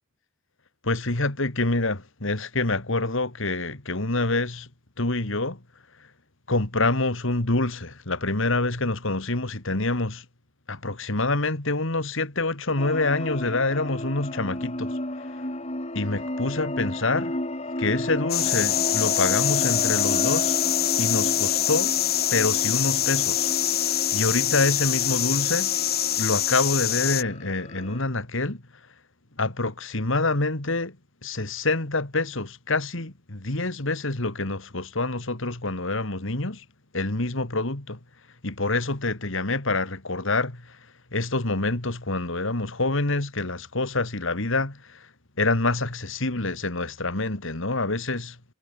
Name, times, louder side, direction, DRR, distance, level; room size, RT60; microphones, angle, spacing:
voice 1, 0.8-4.7 5.0-5.6 6.0-6.1 6.5-10.3 10.7-15.0 15.3-15.4 15.9-17.3 17.8-20.6 21.0-21.9 22.3-23.5 23.8-25.7 26.2-28.6 29.4-31.0 31.2-36.6 36.9-38.0 38.4-45.1 45.4-48.5, left 2 dB, 65° left, 2.6 m, -26 dB
sound 1, 12.8-28.0, left 1 dB, 30° left, 7.1 m, -33 dB
sound 2, 18.3-27.2, left 12 dB, 50° left, 3.0 m, -24 dB
head